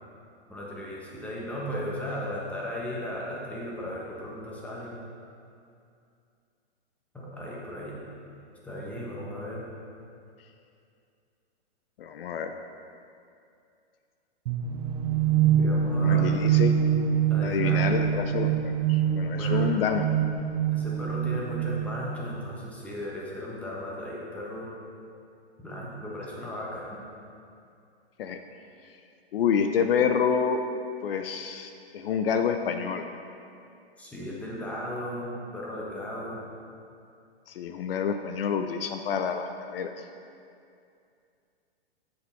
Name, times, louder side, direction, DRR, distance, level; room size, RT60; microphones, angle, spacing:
voice 1, 0.5-5.0 7.1-8.0 8.6-9.7 15.6-16.3 17.3-17.9 19.4-19.8 20.7-24.7 25.6-27.1 34.0-36.4, left 1 dB, 5° left, -5 dB, 1.2 m, -36 dB
voice 2, 12.0-12.5 16.0-16.7 17.4-20.1 28.2-28.4 29.3-30.6 31.0-33.1 37.5-40.0, left 7 dB, 65° left, 7 dB, 0.6 m, -28 dB
sound 1, 14.5-22.2, right 9 dB, 40° right, 0.5 m, -25 dB
8.4 x 6.6 x 4.5 m, 2.5 s
hypercardioid pair, 145°, 32 cm